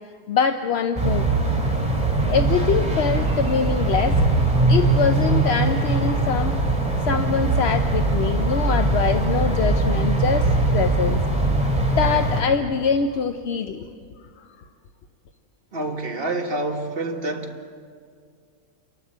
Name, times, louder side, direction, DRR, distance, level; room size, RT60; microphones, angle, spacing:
voice 1, 0.3-1.3 2.3-4.2 4.7-6.6 7.0-11.2 11.8-13.8, left 6 dB, 55° left, 0.8 m, -24 dB
sound 1, 1.0-12.4, right 2 dB, 5° right, 2.5 m, -21 dB
voice 2, 15.7-17.8, right 2 dB, 40° right, 1.7 m, -28 dB
28.5 x 11.5 x 8.8 m
omnidirectional pair, 1.6 m